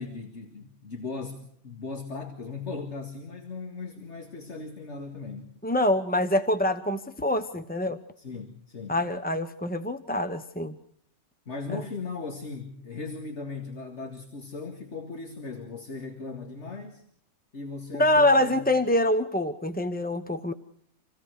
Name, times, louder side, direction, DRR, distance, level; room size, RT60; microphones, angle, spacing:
voice 1, 0.0-5.5 8.2-9.0 11.5-17.0 17.5-18.7, left 4 dB, 50° left, 3 dB, 2.3 m, -38 dB
voice 2, 5.6-8.0 8.9-10.7 11.7-11.8 18.0-20.5, left 1 dB, 10° left, 9 dB, 0.6 m, -25 dB
27.0 x 17.0 x 6.4 m, 0.69 s
omnidirectional pair, 1.5 m